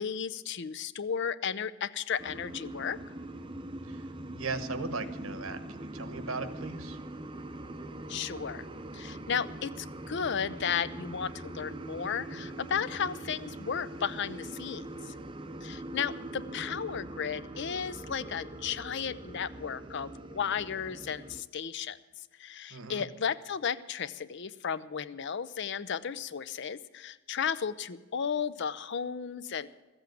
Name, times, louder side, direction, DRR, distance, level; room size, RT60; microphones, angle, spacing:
voice 1, 0.0-3.0 8.1-8.6 8.9-15.1 15.6-22.0 22.4-29.7, left 7 dB, 50° left, 15 dB, 0.5 m, -34 dB
sound 1, 2.2-21.4, right 1 dB, 20° right, 0.6 m, -42 dB
voice 2, 4.3-7.0 22.7-23.0, right 3 dB, 65° right, 10 dB, 1.1 m, -38 dB
14.0 x 8.0 x 9.0 m, 1.2 s
head